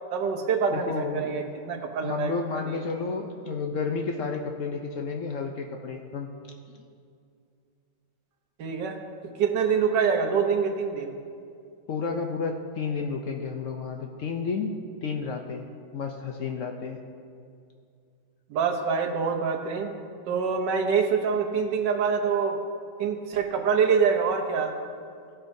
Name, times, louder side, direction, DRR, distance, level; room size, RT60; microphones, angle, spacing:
voice 1, 0.1-2.3 2.7-2.8 8.6-9.0 9.4-11.1 18.5-19.9 20.3-22.6 23.0-24.7, right 6 dB, 70° right, 4 dB, 1.5 m, -25 dB
voice 2, 0.7-1.4 1.9-6.3 6.7-6.8 11.9-14.7 15.0-15.7 15.9-17.0, left 5 dB, 75° left, 3 dB, 0.7 m, -31 dB
15.5 x 8.2 x 2.7 m, 2.4 s
omnidirectional pair, 2.0 m